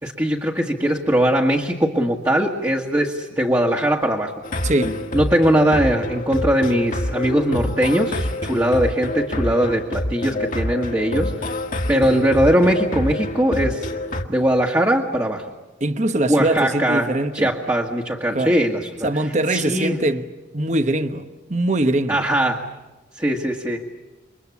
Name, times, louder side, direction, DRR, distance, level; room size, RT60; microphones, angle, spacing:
voice 1, 0.0-4.4 5.1-11.5 11.9-13.9 14.3-15.5 16.3-19.1 19.5-20.0 22.1-22.7 23.1-23.8, right 1 dB, 15° right, 1.7 m, -20 dB
sound 1, 4.4-14.2, left 1 dB, 45° left, 1.7 m, -26 dB
voice 2, 4.6-5.0 15.8-17.5 18.3-18.5 19.0-20.2 20.5-21.2 21.5-22.2, right 1 dB, 40° right, 1.1 m, -22 dB
28.5 x 24.0 x 8.4 m
head